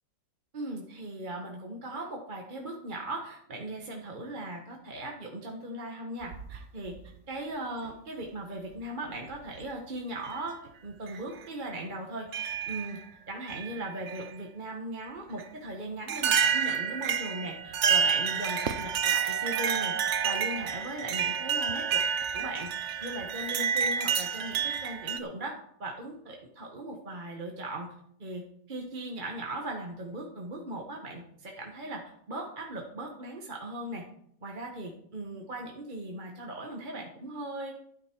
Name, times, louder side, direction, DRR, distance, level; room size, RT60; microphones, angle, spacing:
voice 1, 0.5-6.9 7.3-10.6 10.8-13.0 13.3-19.9 20.2-22.0 22.3-22.7 23.0-27.9 28.2-28.4 28.7-34.0 34.4-37.7, right 1 dB, 30° right, 0 dB, 1.3 m, -38 dB
sound 1, 6.2-7.1 8.2-8.3 9.3-9.6 10.3-10.4 11.1-11.2 12.3-13.0 13.5-14.3 15.4-15.5 16.1-25.2, right 7 dB, 60° right, 0.7 m, -29 dB
12.0 x 9.3 x 4.6 m, 0.68 s
omnidirectional pair, 2.0 m